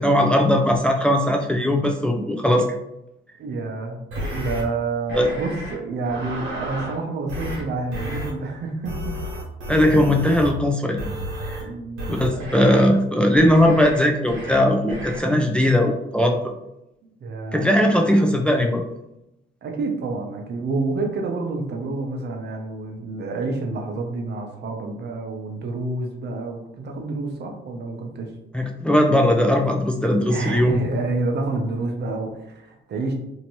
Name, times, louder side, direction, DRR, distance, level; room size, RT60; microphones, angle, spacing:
voice 1, 0.0-2.7 5.1-5.3 9.7-11.0 11.5-11.6 12.1-16.4 17.5-18.8 28.5-30.7, left 1 dB, 5° left, 2 dB, 0.4 m, -19 dB
voice 2, 3.4-4.0 4.3-9.1 11.6-12.6 17.0-17.7 19.6-28.3 30.2-33.1, right 3 dB, 55° right, 2 dB, 0.7 m, -28 dB
sound 1, 4.1-4.6 5.1-5.7 6.0-7.0 7.3-7.6 7.9-8.3 8.9-10.6 11.0-11.6 12.0-12.9 13.3-14.0 14.3-14.6 14.9-15.2, equal, 80° right, 1.2 m, -32 dB
2.9 x 2.7 x 3.0 m, 0.86 s
cardioid pair, 90°, 20 cm